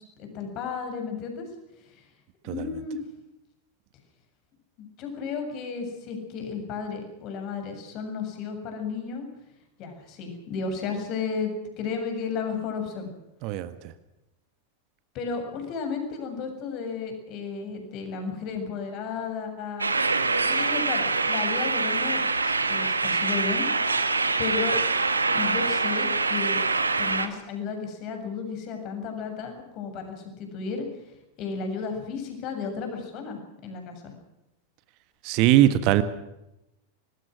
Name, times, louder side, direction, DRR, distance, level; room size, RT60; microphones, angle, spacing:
voice 1, 0.2-1.5 2.4-3.0 4.8-9.3 9.8-13.1 15.1-19.9 20.4-23.7 24.4-24.8 25.3-26.6 27.0-30.9 31.4-34.1, left 5 dB, 40° left, 5 dB, 7.0 m, -33 dB
voice 2, 13.4-13.7 35.2-36.0, right 14 dB, 45° right, 12 dB, 1.6 m, -20 dB
sound 1, 19.8-27.3, right 3 dB, 80° right, 1.8 m, -25 dB
25.5 x 20.5 x 6.3 m, 0.91 s
figure-of-eight pair, 90°, 0 cm